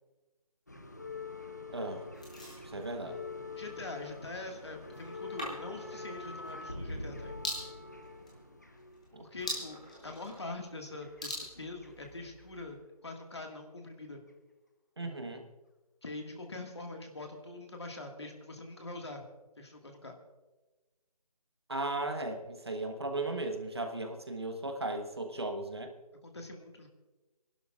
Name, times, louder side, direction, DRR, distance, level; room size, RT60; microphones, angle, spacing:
sound 1, 0.7-10.1 11.0-12.1 12.4-12.6 13.5-13.6, left 3 dB, 25° left, 0.7 m, -45 dB
voice 1, 1.7-2.0 2.6-3.2 9.1-9.2 15.0-15.4 21.7-25.9, right 2 dB, 40° right, 5 dB, 1.2 m, -36 dB
sound 2, 2.1-12.7, left 1 dB, 10° left, 1.1 m, -45 dB
voice 2, 3.5-7.3 9.2-14.2 15.0-15.2 16.0-19.3 19.6-20.2 26.2-26.9, left 2 dB, 45° left, 3 dB, 1.9 m, -44 dB
27.5 x 12.0 x 2.5 m, 1.2 s
figure-of-eight pair, 180°, 20 cm